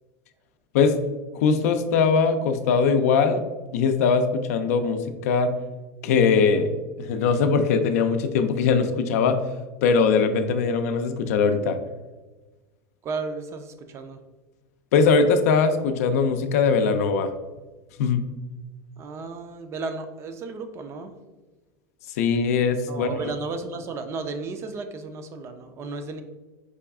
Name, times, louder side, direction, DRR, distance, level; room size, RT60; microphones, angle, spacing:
voice 1, 1.3-3.4 3.7-5.5 6.0-6.7 7.0-9.5 9.8-11.8 14.9-17.3 18.0-18.2 22.1-23.2, left 5 dB, 75° left, 8 dB, 0.4 m, -21 dB
voice 2, 13.0-14.2 19.0-21.1 22.9-26.2, right 3 dB, 35° right, 8 dB, 0.4 m, -34 dB
4.8 x 2.3 x 3.5 m, 1.2 s
supercardioid pair, 120°, 8 cm